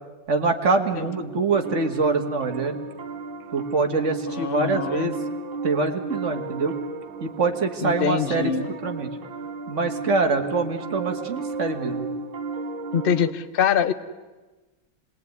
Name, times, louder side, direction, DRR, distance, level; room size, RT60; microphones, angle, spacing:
voice 1, 0.3-2.8 3.5-5.2 5.6-6.7 7.2-9.1 9.7-12.1, right 3 dB, 40° right, 5 dB, 2.1 m, -24 dB
Piano, 0.8-13.3, right 3 dB, 85° right, 2.0 m, -34 dB
voice 2, 4.3-5.1 7.8-8.7 12.9-13.9, left 8 dB, 40° left, 13 dB, 0.8 m, -24 dB
26.0 x 20.5 x 9.5 m, 1.2 s
omnidirectional pair, 2.1 m